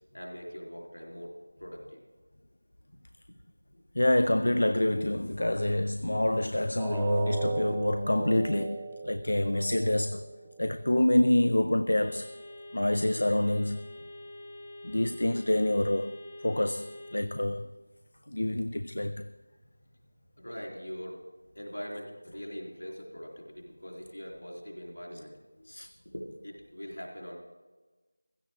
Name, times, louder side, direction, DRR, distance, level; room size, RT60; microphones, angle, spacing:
voice 1, 0.1-2.0 3.7-3.8 20.4-21.2 21.5-25.3 26.1-27.4, equal, 75° left, 3.4 m, -42 dB
voice 2, 3.9-10.3 10.6-12.3 12.7-13.8 14.8-16.2 16.4-17.7 18.3-19.3 25.6-25.9, left 1 dB, 60° left, 0.5 m, -27 dB
sound 1, 6.8-12.7 13.1-13.3 13.8-13.9, right 3 dB, 5° right, 0.8 m, -38 dB
sound 2, 12.0-17.2, left 1 dB, 30° left, 1.1 m, -46 dB
16.0 x 14.0 x 3.6 m
figure-of-eight pair, 170°, 0 cm